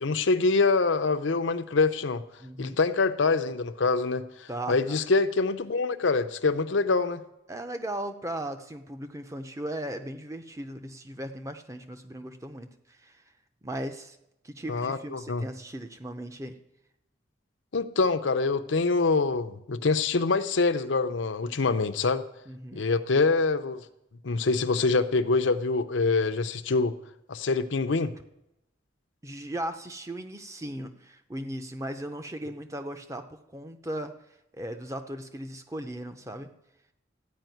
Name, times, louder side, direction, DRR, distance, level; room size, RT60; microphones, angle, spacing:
voice 1, 0.0-2.2 2.6-7.2 14.7-15.4 17.7-22.2 22.8-23.8 24.2-27.0 27.3-28.1, left 3 dB, 80° left, 9 dB, 0.7 m, -25 dB
voice 2, 2.4-2.8 4.5-5.0 7.5-13.2 13.6-14.2 14.4-16.6 21.4-21.7 22.5-22.8 29.2-33.3 33.5-34.1 34.5-36.5, right 1 dB, 15° right, 7 dB, 0.7 m, -37 dB
13.5 x 5.2 x 9.2 m, 0.86 s
head